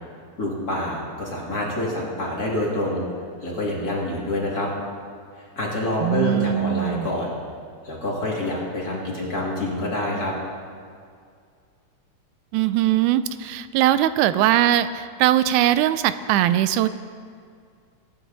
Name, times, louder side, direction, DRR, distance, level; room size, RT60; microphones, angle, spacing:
voice 1, 0.4-3.1 3.4-4.7 5.6-7.3 7.8-10.3, left 1 dB, 30° left, -4 dB, 2.8 m, -27 dB
voice 2, 6.0-7.1 12.5-16.9, right 12 dB, 85° right, 13 dB, 2.0 m, -20 dB
23.0 x 11.0 x 4.0 m, 2.2 s
omnidirectional pair, 3.4 m